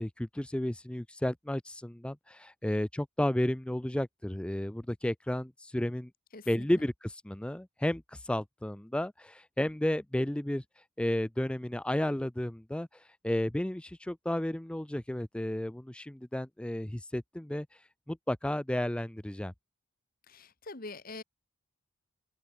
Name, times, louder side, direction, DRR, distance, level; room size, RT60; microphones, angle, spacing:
voice 1, 0.0-6.1 6.5-19.5, left 1 dB, 5° left, 0.3 m, -33 dB
voice 2, 6.3-6.7 20.3-21.2, left 3 dB, 40° left, 1.7 m, -44 dB
open air
head